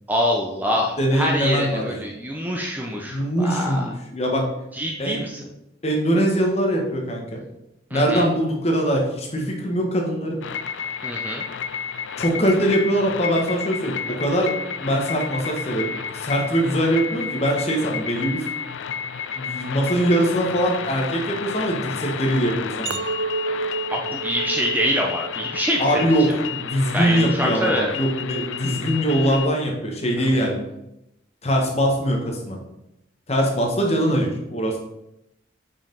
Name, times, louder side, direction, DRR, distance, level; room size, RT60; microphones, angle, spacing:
voice 1, 0.1-3.9 4.7-5.4 7.9-8.2 11.0-11.4 23.9-25.8 26.9-27.9 30.3-30.4, equal, 10° right, 0 dB, 0.6 m, -25 dB
voice 2, 1.0-2.0 3.1-4.5 5.0-5.2 5.8-7.4 7.9-10.4 12.2-14.5 14.8-18.4 19.3-23.0 25.8-30.6 31.4-32.6 33.3-34.8, equal, 30° left, 0 dB, 1.3 m, -22 dB
sound 1, 10.4-29.5, left 7 dB, 75° left, 0.4 m, -31 dB
Chink clink, 22.9-27.2 27.7-28.1, right 4 dB, 70° right, 0.4 m, -31 dB
5.8 x 4.9 x 5.3 m, 0.87 s
head